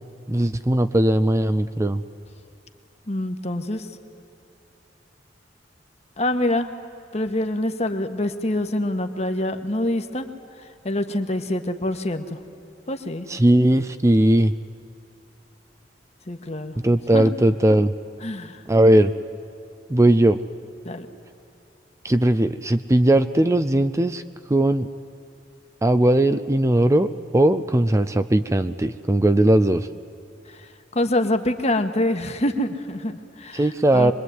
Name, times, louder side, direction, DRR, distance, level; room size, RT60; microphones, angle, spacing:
voice 1, 0.3-2.0 13.3-14.5 16.8-17.9 18.7-19.1 19.9-20.4 22.0-24.2 24.5-24.9 25.8-27.1 27.3-29.9 33.5-34.1, right 1 dB, 15° right, 10 dB, 0.5 m, -18 dB
voice 2, 3.1-3.9 6.2-6.7 7.1-10.2 10.8-12.4 12.9-13.3 16.3-16.8 17.1-17.3 18.2-18.6 20.8-21.1 30.9-34.1, left 1 dB, 35° left, 7 dB, 1.5 m, -25 dB
25.5 x 21.5 x 9.5 m, 2.8 s
head